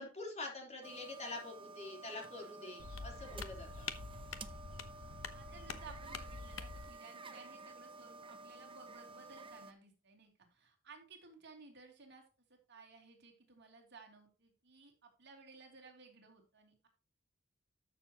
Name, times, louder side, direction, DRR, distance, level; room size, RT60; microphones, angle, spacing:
voice 1, 0.0-3.9, left 2 dB, 35° left, 1 dB, 3.4 m, -46 dB
sound 1, 0.8-9.7, right 3 dB, 25° right, 0.7 m, -52 dB
voice 2, 2.3-2.8 4.0-4.2 4.5-4.6 5.3-12.2 12.5-16.9, right 4 dB, 60° right, 2 dB, 2.9 m, -58 dB
sound 2, 2.8-6.9, left 5 dB, 80° left, 1.0 m, -46 dB
13.0 x 7.0 x 2.9 m, 0.30 s
head